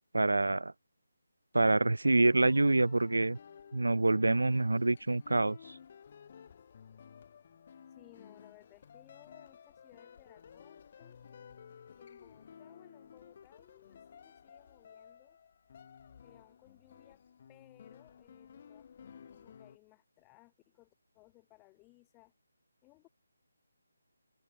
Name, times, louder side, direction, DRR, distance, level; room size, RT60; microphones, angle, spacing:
voice 1, 0.1-0.7 1.5-3.4 3.7-5.6, right 2 dB, 75° right, 0.3 m, -26 dB
sound 1, 2.0-19.8, left 7 dB, 40° left, 1.3 m, -55 dB
voice 2, 7.9-11.2 11.9-15.4 16.2-17.2 17.5-22.3 22.8-23.1, left 26 dB, 15° left, 1.4 m, -62 dB
figure-of-eight pair, 155°, 0 cm